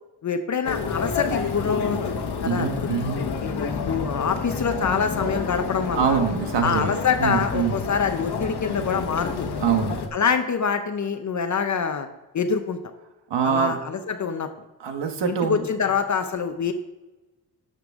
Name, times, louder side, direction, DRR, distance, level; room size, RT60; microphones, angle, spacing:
voice 1, 0.2-2.0 2.4-3.0 3.4-6.2 6.6-9.5 10.1-12.1 12.3-12.8 13.4-14.5 15.3-16.7, left 6 dB, 45° left, 7 dB, 0.6 m, -25 dB
sound 1, 0.6-10.1, left 5 dB, 70° left, 1.1 m, -29 dB
voice 2, 2.4-3.2 6.0-6.9 7.2-7.8 9.6-10.0 13.3-13.8 14.8-15.6, right 7 dB, 80° right, 5 dB, 1.3 m, -24 dB
12.5 x 6.8 x 3.6 m, 1.1 s
wide cardioid pair, 160°, 41 cm